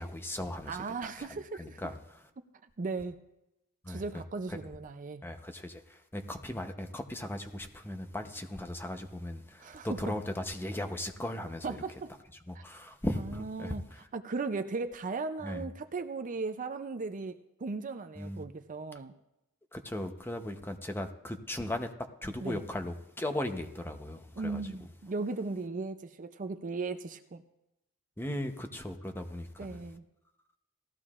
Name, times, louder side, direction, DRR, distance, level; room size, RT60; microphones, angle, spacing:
voice 1, 0.0-0.8 1.2-1.3 1.6-2.2 3.8-4.0 5.2-5.8 6.1-11.8 12.5-14.0 15.4-15.7 18.2-18.4 19.7-21.9 22.2-24.6 28.2-29.8, left 1 dB, 10° left, 6 dB, 0.8 m, -37 dB
voice 2, 0.7-1.9 2.8-3.2 3.9-5.2 9.6-10.1 11.6-12.1 12.5-12.6 13.2-13.8 14.1-19.1 22.4-22.6 24.4-27.4 29.6-30.0, right 3 dB, 35° right, 8 dB, 0.5 m, -37 dB
18.0 x 14.0 x 2.5 m, 0.91 s
head